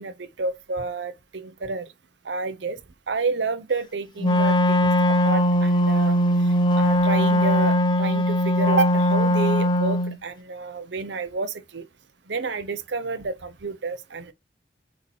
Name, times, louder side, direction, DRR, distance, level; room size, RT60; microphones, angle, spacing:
voice 1, 0.0-1.9 2.2-2.8 3.1-6.2 6.4-11.9 12.3-14.3, right 3 dB, 70° right, 0.7 m, -30 dB
Wind instrument woodwind instrument, 4.2-10.2, equal, 25° left, 0.6 m, -20 dB
8.1 x 2.9 x 4.5 m
head